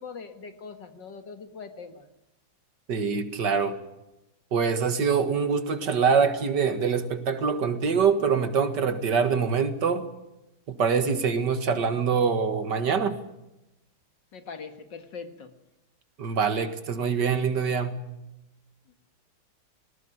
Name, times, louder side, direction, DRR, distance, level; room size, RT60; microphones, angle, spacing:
voice 1, 0.0-2.1 14.3-15.5, left 5 dB, 60° left, 8 dB, 2.4 m, -41 dB
voice 2, 2.9-3.8 4.5-10.1 10.7-13.2 16.2-18.0, right 6 dB, 60° right, 9 dB, 2.3 m, -24 dB
19.0 x 19.0 x 9.9 m, 0.92 s
omnidirectional pair, 2.2 m